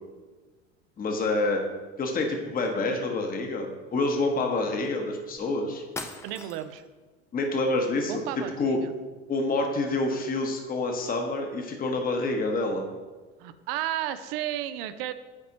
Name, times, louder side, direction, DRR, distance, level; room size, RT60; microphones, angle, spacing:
voice 1, 1.0-1.6 2.0-5.8 7.3-8.2 8.6-8.8 9.3-12.9, left 2 dB, 25° left, 3 dB, 1.0 m, -27 dB
sound 1, 5.4-5.5 5.9-6.9, left 2 dB, 10° left, 0.5 m, -39 dB
voice 2, 6.2-6.8 8.1-8.9 13.4-15.1, right 12 dB, 60° right, 12 dB, 0.5 m, -33 dB
9.6 x 4.1 x 2.9 m, 1.3 s
hypercardioid pair, 75°, 32 cm